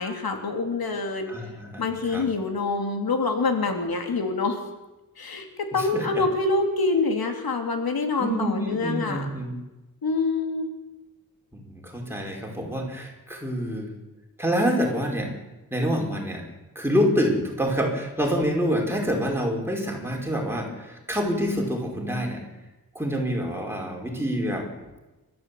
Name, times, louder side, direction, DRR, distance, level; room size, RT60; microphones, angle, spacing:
voice 1, 0.0-1.3 1.8-4.6 5.2-9.3 10.0-10.7, left 3 dB, 85° left, 4 dB, 3.3 m, -26 dB
voice 2, 1.3-1.9 2.1-2.3 5.8-6.1 8.2-9.5 11.5-13.9 14.4-15.3 15.7-16.4 16.8-22.4 23.0-24.7, equal, 5° right, 0 dB, 5.3 m, -26 dB
29.5 x 14.0 x 8.6 m, 1.1 s
wide cardioid pair, 145°, 36 cm